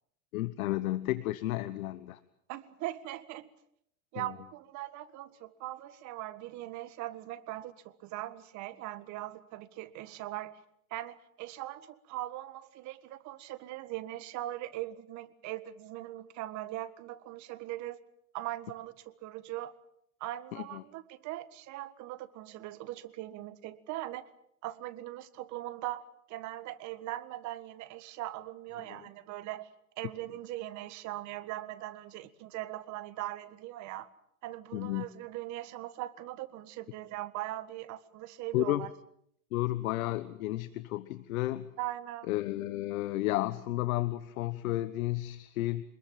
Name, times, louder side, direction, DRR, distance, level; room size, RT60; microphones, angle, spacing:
voice 1, 0.3-2.2 4.1-4.3 20.5-20.8 28.9-29.0 34.7-35.0 38.5-38.9 39.5-41.7 42.3-45.8, left 16 dB, 65° left, 14 dB, 1.3 m, -32 dB
voice 2, 2.5-3.5 4.1-10.6 10.9-18.0 18.3-19.7 20.2-24.2 24.6-29.7 30.0-34.1 34.4-38.9 41.8-42.3, right 15 dB, 40° right, 13 dB, 1.7 m, -40 dB
26.0 x 21.0 x 7.6 m, 0.72 s
supercardioid pair, 130°, 45 cm